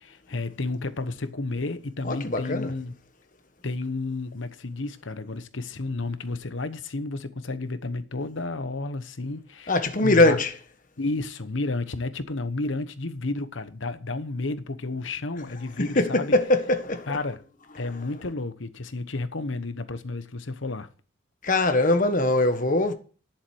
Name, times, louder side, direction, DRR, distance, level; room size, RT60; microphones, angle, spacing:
voice 1, 0.0-2.9 3.6-10.4 11.0-16.3 17.1-17.4 17.8-20.9, left 2 dB, 75° left, 1.0 m, -31 dB
voice 2, 2.0-2.7 9.7-10.6 15.8-17.3 17.7-18.0 21.4-22.9, left 2 dB, 40° left, 1.4 m, -22 dB
11.0 x 7.3 x 6.3 m
head